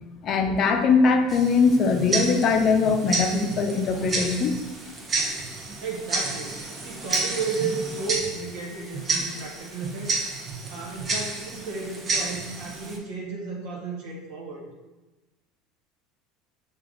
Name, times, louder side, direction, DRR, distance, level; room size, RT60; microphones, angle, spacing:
voice 1, 0.2-4.5, left 4 dB, 45° left, 5 dB, 0.5 m, -21 dB
Tick-tock, 1.3-13.0, right 3 dB, 30° right, 0.9 m, -31 dB
voice 2, 5.8-10.1 10.6-14.6, right 4 dB, 75° right, -1 dB, 1.3 m, -33 dB
5.7 x 2.4 x 3.8 m, 1.1 s
supercardioid pair, 100°, 0 cm